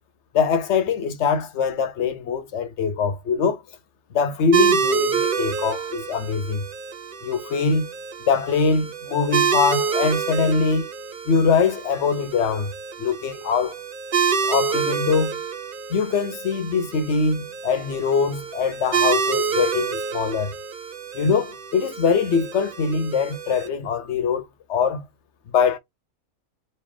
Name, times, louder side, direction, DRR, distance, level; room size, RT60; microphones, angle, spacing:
voice 1, 0.3-3.6 4.1-6.7 7.2-7.9 8.3-10.9 11.3-12.7 13.0-13.7 14.5-15.4 15.9-20.5 21.1-25.0 25.5-25.8, left 5 dB, 60° left, 0.8 m, -23 dB
sound 1, 4.5-23.7, right 6 dB, 50° right, 0.7 m, -27 dB
3.2 x 2.6 x 3.6 m
omnidirectional pair, 1.5 m